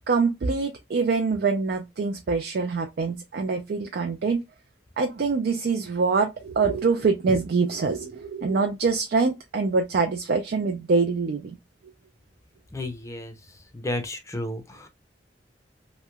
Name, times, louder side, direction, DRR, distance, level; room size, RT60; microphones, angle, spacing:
voice 1, 0.1-4.4 5.0-11.6, right 4 dB, 60° right, 0.4 m, -24 dB
voice 2, 12.7-13.3 13.7-14.9, left 1 dB, 15° left, 0.5 m, -32 dB
3.0 x 2.8 x 2.2 m
head